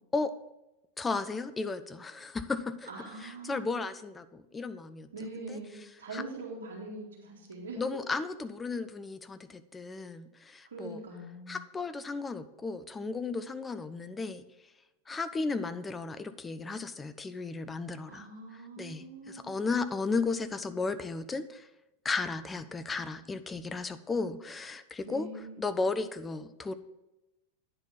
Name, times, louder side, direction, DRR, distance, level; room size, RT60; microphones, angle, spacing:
voice 1, 1.0-2.9 3.2-5.1 5.5-5.6 6.1-6.2 7.8-11.0 11.5-14.4 15.1-18.3 18.8-21.7 22.0-25.3 25.6-26.7, left 4 dB, 15° left, 11 dB, 0.5 m, -34 dB
voice 2, 2.9-3.8 5.1-7.8 10.7-11.6 18.1-19.6 25.0-25.6, right 2 dB, 65° right, -4 dB, 2.1 m, -43 dB
9.7 x 4.1 x 7.0 m, 0.99 s
figure-of-eight pair, 90°, 0 cm